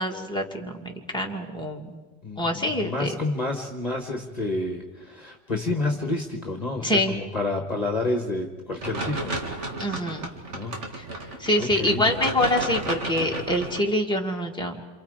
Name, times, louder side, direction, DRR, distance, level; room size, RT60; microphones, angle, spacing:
voice 1, 0.0-2.0 2.4-3.1 6.8-7.2 9.8-10.3 11.0-11.1 11.4-14.8, left 1 dB, 5° left, 0 dB, 2.2 m, -25 dB
voice 2, 2.2-9.3 10.5-10.8 11.6-12.0, left 2 dB, 35° left, 3 dB, 1.6 m, -29 dB
sound 1, 8.8-13.8, right 2 dB, 80° right, 2.6 m, -32 dB
28.0 x 28.0 x 5.0 m, 1.3 s
omnidirectional pair, 1.2 m